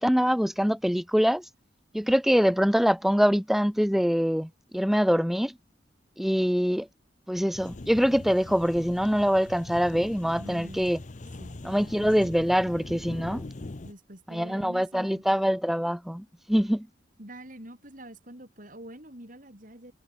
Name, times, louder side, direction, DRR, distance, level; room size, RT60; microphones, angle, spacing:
voice 1, 0.0-1.4 1.9-5.5 6.2-6.9 7.3-11.0 11.6-13.4 14.3-16.9, equal, ahead, 0.7 m, -24 dB
sound 1, 7.5-13.9, left 2 dB, 40° left, 0.7 m, -41 dB
voice 2, 10.4-10.9 11.4-11.6 13.8-15.2 17.2-19.9, right 1 dB, 45° right, 6.5 m, -45 dB
head